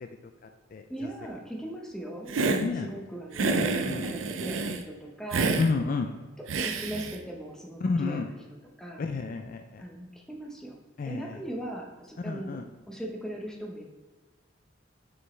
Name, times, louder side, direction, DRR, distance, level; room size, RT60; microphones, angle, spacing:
voice 1, 0.9-3.5 4.0-6.0 6.5-8.3 8.8-9.0 9.8-10.8 11.1-13.8, right 1 dB, 5° left, -1 dB, 0.8 m, -39 dB
Hiss, 2.3-2.7 3.3-4.8 5.3-5.7 6.5-7.2, right 3 dB, 80° right, 0.5 m, -28 dB
voice 2, 2.5-2.9 3.6-4.1 5.6-6.1 7.8-8.3 9.0-9.9 11.0-11.4 12.2-12.6, left 4 dB, 45° left, 5 dB, 0.4 m, -30 dB
5.7 x 5.5 x 3.2 m, 1.4 s
head